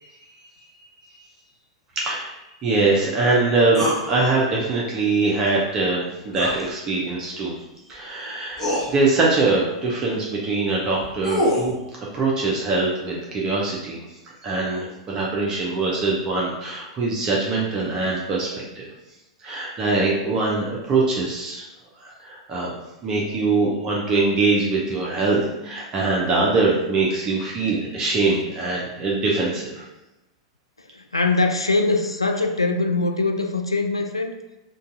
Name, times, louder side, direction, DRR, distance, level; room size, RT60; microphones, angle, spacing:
voice 1, 2.0-2.3 2.6-7.5 7.9-14.0 14.4-18.9 19.4-21.6 22.0-22.7 23.0-29.8, right 3 dB, 25° right, -3 dB, 0.5 m, -23 dB
sound 1, 3.7-4.0 6.3-6.6 7.9-8.0 8.6-8.9 10.8-11.7, equal, 10° left, 1.1 m, -23 dB
voice 2, 31.1-34.4, left 3 dB, 85° left, 5 dB, 0.3 m, -22 dB
2.6 x 2.2 x 3.7 m, 0.97 s
figure-of-eight pair, 95°, 3 cm